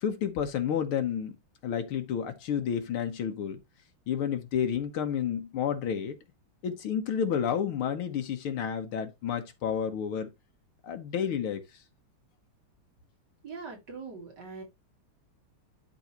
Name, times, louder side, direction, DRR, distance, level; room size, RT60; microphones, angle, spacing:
voice 1, 0.0-1.3 1.6-3.6 4.1-6.2 6.6-10.3 10.8-11.6, left 8 dB, 80° left, 2.0 m, -30 dB
voice 2, 13.4-14.6, right 4 dB, 50° right, 2.9 m, -42 dB
12.0 x 4.2 x 2.9 m
omnidirectional pair, 2.3 m